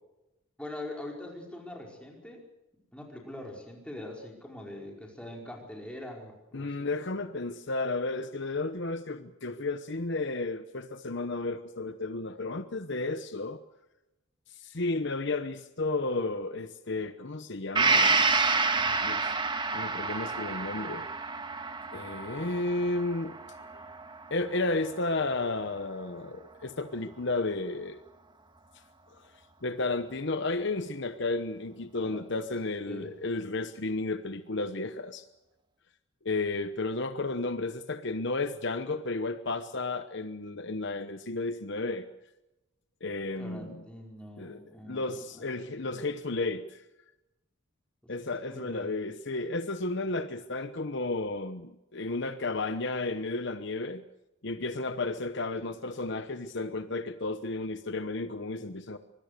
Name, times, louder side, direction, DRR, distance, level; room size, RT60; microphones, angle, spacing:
voice 1, 0.6-2.4 2.9-6.9 32.0-32.2 32.9-33.1 43.4-45.4 48.5-48.9, left 1 dB, 5° left, 0 dB, 5.0 m, -43 dB
voice 2, 6.5-13.6 14.5-18.3 18.7-19.3 19.7-21.1 21.9-23.8 24.3-28.0 29.6-35.3 36.2-42.1 43.0-43.8 44.4-46.8 48.1-54.0 54.4-59.0, left 2 dB, 55° left, 10 dB, 1.0 m, -33 dB
Gong, 17.7-25.4 25.8-25.9, right 4 dB, 20° right, 1.7 m, -29 dB
25.0 x 20.5 x 6.7 m, 0.95 s
head